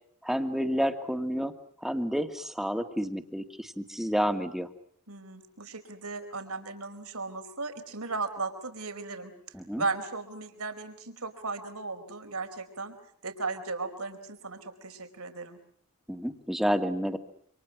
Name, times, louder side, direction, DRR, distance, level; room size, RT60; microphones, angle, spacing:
voice 1, 0.2-1.5 1.8-4.7 9.5-9.8 16.1-17.2, equal, ahead, 7 dB, 2.3 m, -30 dB
voice 2, 5.1-9.3 9.8-12.9 13.2-15.6, right 3 dB, 70° right, 8 dB, 4.7 m, -36 dB
28.5 x 27.0 x 6.2 m, 0.64 s
head